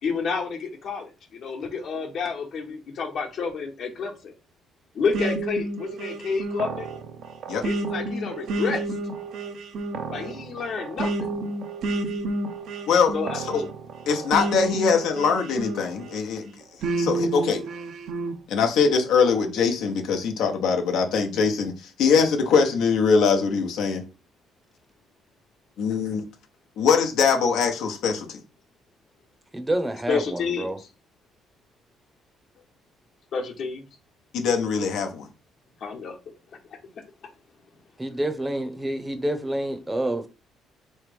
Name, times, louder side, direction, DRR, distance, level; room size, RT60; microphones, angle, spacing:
voice 1, 0.0-4.3 4.9-6.9 7.6-8.8 10.1-11.3 13.1-13.4 30.1-30.9 33.3-33.8 35.8-36.2, left 5 dB, 60° left, 1.1 m, -29 dB
sound 1, 5.1-16.2 16.8-18.4, right 2 dB, 70° right, 0.6 m, -30 dB
voice 2, 12.9-13.6 14.1-16.4 17.0-17.6 18.5-24.0 25.8-26.2 26.8-28.4 34.3-35.3, left 5 dB, 80° left, 0.8 m, -22 dB
voice 3, 29.5-30.8 38.0-40.3, right 1 dB, 15° right, 0.7 m, -28 dB
3.4 x 3.1 x 3.4 m
cardioid pair, 90°, 0 cm